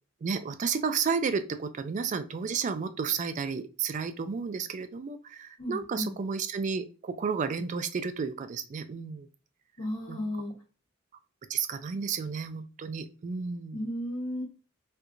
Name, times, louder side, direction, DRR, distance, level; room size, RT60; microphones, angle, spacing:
voice 1, 0.2-9.3 10.1-10.3 11.5-13.9, right 5 dB, 35° right, 10 dB, 0.3 m, -32 dB
voice 2, 5.6-6.2 9.8-10.5 13.7-14.4, left 1 dB, 65° left, -4 dB, 1.3 m, -34 dB
4.3 x 2.4 x 2.5 m, 0.35 s
head